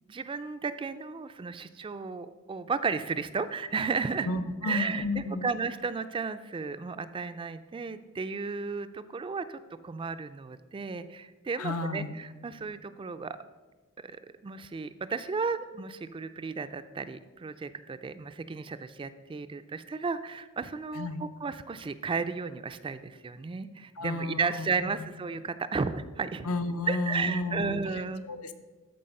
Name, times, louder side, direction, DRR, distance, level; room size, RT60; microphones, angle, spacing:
voice 1, 0.1-4.3 4.6-13.4 14.0-26.5 26.9-28.3, right 4 dB, 25° right, 12 dB, 0.3 m, -34 dB
voice 2, 4.2-5.5 11.6-12.1 20.9-21.2 24.0-24.7 25.0-25.1 26.4-27.8 28.2-28.5, left 2 dB, 75° left, 9 dB, 0.7 m, -32 dB
13.0 x 4.4 x 5.3 m, 1.3 s
head